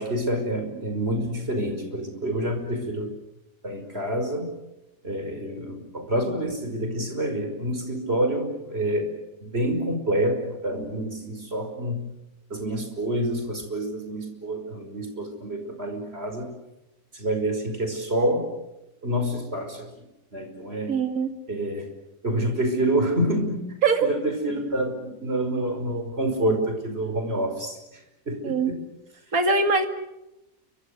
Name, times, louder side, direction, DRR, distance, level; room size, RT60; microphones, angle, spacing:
voice 1, 0.0-3.1 3.6-4.5 5.0-9.1 9.5-12.1 12.5-16.5 17.1-18.5 19.0-19.9 20.3-20.9 21.5-21.9 22.2-23.6 24.0-27.8 28.3-28.8, right 1 dB, 40° right, 6 dB, 5.7 m, -27 dB
voice 2, 20.9-21.3 23.8-24.1 28.4-28.7 29.3-29.9, right 4 dB, 60° right, 7 dB, 2.6 m, -22 dB
30.0 x 24.5 x 6.7 m, 0.92 s
omnidirectional pair, 1.6 m